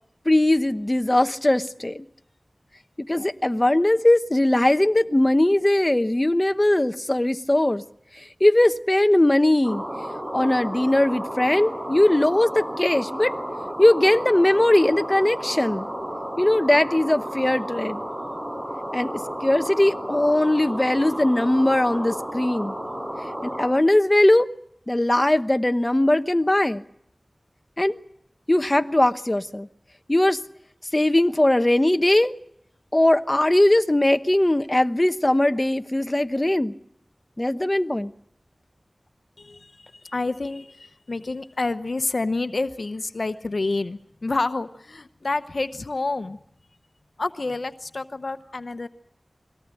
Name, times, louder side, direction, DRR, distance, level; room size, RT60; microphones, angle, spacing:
voice 1, 0.2-2.1 3.0-7.8 8.1-9.8 10.3-13.3 13.8-15.9 16.4-18.0 18.9-22.7 23.4-24.5 24.9-26.8 27.8-28.0 28.5-29.7 30.1-30.4 30.9-32.3 32.9-36.7 37.4-38.1, left 1 dB, 30° left, 1.0 m, -20 dB
sound 1, 9.6-23.7, equal, 20° right, 5.1 m, -32 dB
voice 2, 39.4-46.4 47.2-48.9, left 3 dB, 75° left, 0.9 m, -28 dB
23.0 x 17.5 x 9.1 m
wide cardioid pair, 40°, 0 cm